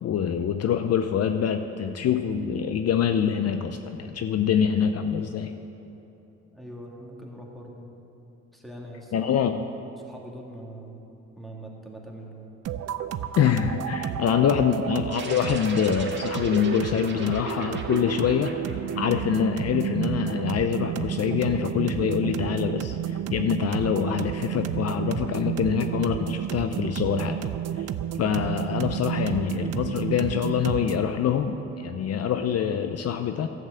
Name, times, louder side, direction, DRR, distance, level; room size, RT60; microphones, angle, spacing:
voice 1, 0.0-5.5 9.1-9.6 13.4-18.5 19.0-27.4 27.8-27.9 28.2-33.5, left 8 dB, 55° left, 8 dB, 0.6 m, -25 dB
voice 2, 6.5-7.9 8.5-9.6 10.0-11.0 11.4-12.5 14.0-15.6, right 1 dB, ahead, -1 dB, 2.2 m, -43 dB
sound 1, 12.7-31.1, right 10 dB, 55° right, 0.5 m, -31 dB
sound 2, 15.1-19.8, right 3 dB, 35° right, 1.7 m, -41 dB
12.0 x 7.8 x 7.8 m, 2.9 s
cardioid pair, 90°, 30 cm